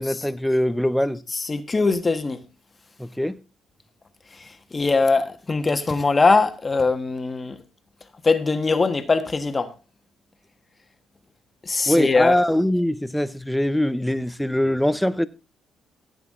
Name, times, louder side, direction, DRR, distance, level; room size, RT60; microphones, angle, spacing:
voice 1, 0.0-1.2 3.0-3.4 11.9-15.3, left 1 dB, 5° left, 0.8 m, -22 dB
voice 2, 1.3-2.4 4.3-7.6 8.2-9.7 11.6-12.4, left 3 dB, 30° left, 1.4 m, -21 dB
15.5 x 8.1 x 3.7 m
cardioid pair, 90°, 0 cm